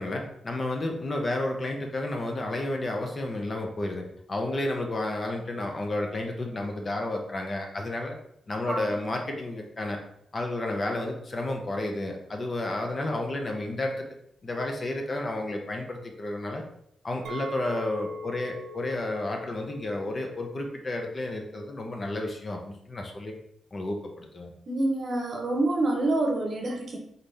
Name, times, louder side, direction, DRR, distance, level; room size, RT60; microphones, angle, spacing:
voice 1, 0.0-8.2 8.5-10.0 10.3-14.0 14.4-16.6 17.0-23.3 23.7-24.5, left 1 dB, 30° left, 2 dB, 0.6 m, -31 dB
Chink clink, 17.2-21.6 21.9-22.4, left 1 dB, 75° right, 0.5 m, -42 dB
voice 2, 24.7-27.0, right 2 dB, 40° right, 1 dB, 0.9 m, -27 dB
4.0 x 3.9 x 3.3 m, 0.73 s
wide cardioid pair, 160°, 0 cm